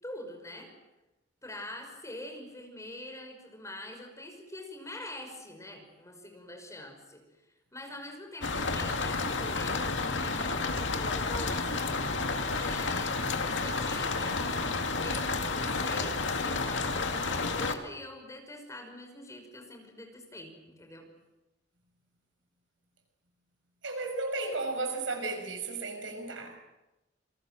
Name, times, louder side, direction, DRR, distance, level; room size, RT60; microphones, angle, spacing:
voice 1, 0.0-0.7 1.4-7.2 7.7-12.2 12.5-13.2 13.6-21.1, left 1 dB, 15° left, 4 dB, 5.8 m, -44 dB
sound 1, 8.4-17.7, left 3 dB, 70° left, 2.3 m, -31 dB
voice 2, 23.8-26.6, right 3 dB, 85° right, 4 dB, 6.6 m, -34 dB
28.0 x 24.0 x 7.7 m, 0.97 s
head